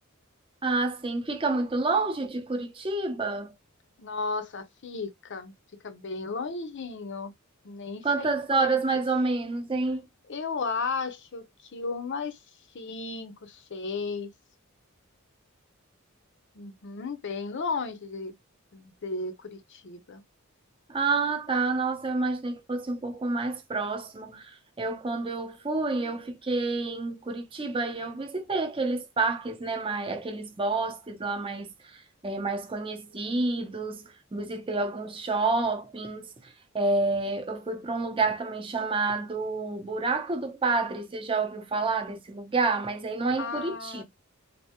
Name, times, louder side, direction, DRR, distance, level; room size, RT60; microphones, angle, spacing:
voice 1, 0.6-3.5 8.0-10.1 20.9-44.0, right 3 dB, 25° right, 0.6 m, -29 dB
voice 2, 4.0-5.5 5.8-7.3 7.6-9.0 10.3-12.4 12.7-14.3 16.5-18.3 18.7-20.2 43.4-44.0, left 4 dB, 60° left, 0.6 m, -34 dB
3.4 x 2.5 x 2.9 m
head